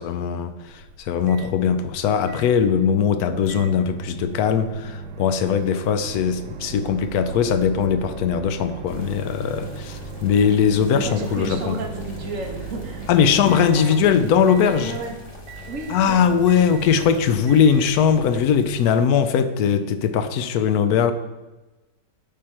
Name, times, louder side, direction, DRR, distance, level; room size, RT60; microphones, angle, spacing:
voice 1, 0.0-11.8 13.1-14.9 15.9-21.1, left 7 dB, 70° left, 10 dB, 1.0 m, -20 dB
Microwave oven, 0.7-18.6, right 6 dB, 80° right, 1.3 m, -39 dB
sound 1, 8.9-19.0, left 4 dB, 25° left, 0.6 m, -42 dB
voice 2, 10.8-13.9 14.8-15.1 15.7-16.3, right 3 dB, 55° right, 2 dB, 1.1 m, -32 dB
8.7 x 3.5 x 4.3 m, 1.1 s
omnidirectional pair, 1.8 m